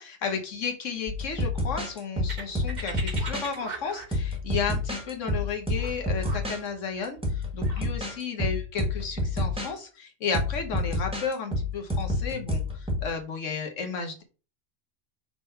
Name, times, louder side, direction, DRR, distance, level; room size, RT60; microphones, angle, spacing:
voice 1, 0.0-14.2, left 5 dB, 80° left, 4 dB, 1.5 m, -33 dB
sound 1, 1.1-3.5 4.1-6.6 7.0-9.7 10.3-13.1, left 1 dB, 5° right, 1.5 m, -29 dB
sound 2, 2.3-7.8, right 3 dB, 40° right, 1.3 m, -40 dB
5.9 x 3.7 x 5.5 m, 0.35 s
omnidirectional pair, 1.3 m